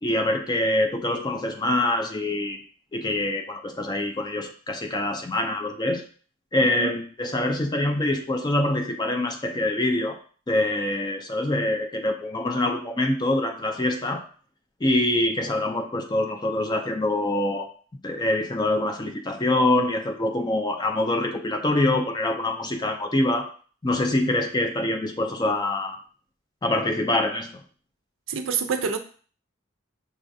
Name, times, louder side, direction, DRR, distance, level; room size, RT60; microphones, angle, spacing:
voice 1, 0.0-2.6 2.9-6.0 6.5-10.2 10.5-14.2 14.8-17.7 18.0-23.5 23.8-26.0 26.6-27.5, left 1 dB, 20° left, 5 dB, 0.4 m, -25 dB
voice 2, 28.3-29.0, right 6 dB, 70° right, 7 dB, 0.5 m, -26 dB
5.9 x 2.4 x 2.6 m, 0.42 s
head